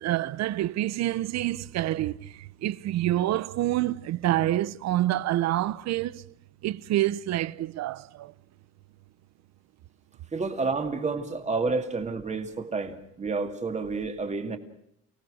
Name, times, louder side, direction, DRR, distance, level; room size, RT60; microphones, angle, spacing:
voice 1, 0.0-6.3 6.6-8.3, right 14 dB, 60° right, 0.8 m, -27 dB
voice 2, 10.3-14.6, right 4 dB, 20° right, 2.4 m, -30 dB
29.0 x 18.0 x 6.4 m
cardioid pair, 155°, 30 cm